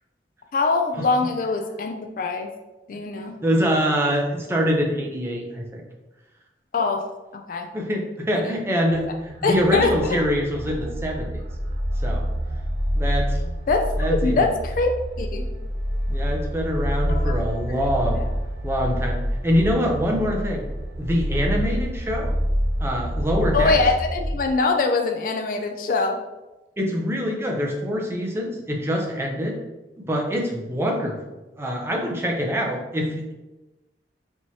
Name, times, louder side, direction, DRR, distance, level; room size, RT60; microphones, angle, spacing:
voice 1, 0.5-2.5 2.9-3.4 6.7-7.0 7.3-7.7 8.4-8.5 9.4-10.2 13.7-14.9 15.2-15.5 17.1-17.3 23.5-26.2, left 3 dB, 50° left, 5 dB, 0.3 m, -23 dB
voice 2, 3.4-5.8 7.7-11.4 12.0-12.2 12.9-13.5 14.0-14.5 16.1-18.2 18.6-20.6 21.0-22.3 22.8-23.8 26.8-29.6 30.1-31.2 31.6-33.3, equal, 15° right, 0 dB, 0.5 m, -24 dB
sound 1, 8.9-24.5, equal, 85° right, 0.7 m, -27 dB
4.6 x 2.9 x 2.7 m, 1.1 s
head